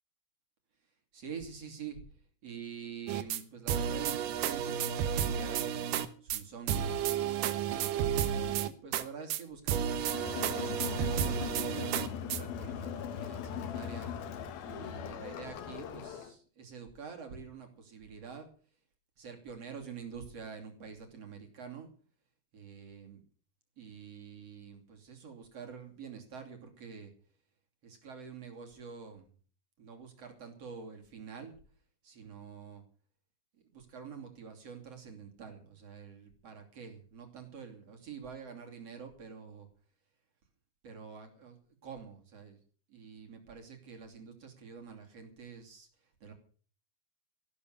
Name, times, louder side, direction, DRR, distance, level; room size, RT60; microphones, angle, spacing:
voice 1, 1.1-2.0 2.4-5.7 6.2-6.9 7.6-14.1 14.6-18.5 19.2-21.9 22.5-23.2 23.8-27.1 27.8-29.3 29.8-31.6 32.0-32.8 33.7-39.7 40.8-41.6 41.8-42.6 42.9-45.9 46.2-46.3, right 6 dB, 40° right, 3 dB, 3.5 m, -47 dB
sound 1, 3.1-3.4 3.7-6.1 6.3-6.4 6.7-9.0 9.3-9.4 9.7-12.4, right 9 dB, 65° right, 2.4 m, -32 dB
Crowd, 10.0-16.3, left 8 dB, 70° left, 3.1 m, -40 dB
14.5 x 12.5 x 6.6 m, 0.42 s
omnidirectional pair, 4.5 m